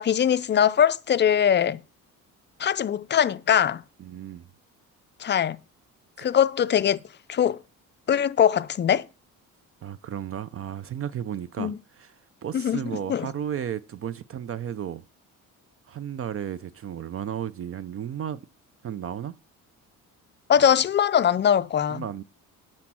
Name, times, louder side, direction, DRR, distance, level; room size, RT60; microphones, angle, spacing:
voice 1, 0.0-1.8 2.6-3.8 5.2-5.6 6.2-7.0 7.3-7.6 8.1-9.1 11.6-11.8 12.5-12.8 13.1-13.3 20.5-22.1, left 9 dB, 35° left, 0.4 m, -21 dB
voice 2, 4.0-4.5 9.8-12.1 12.4-15.0 15.9-18.4 18.8-19.3 21.9-22.2, right 9 dB, 40° right, 0.5 m, -34 dB
10.0 x 4.4 x 6.1 m
cardioid pair, 115°, 34 cm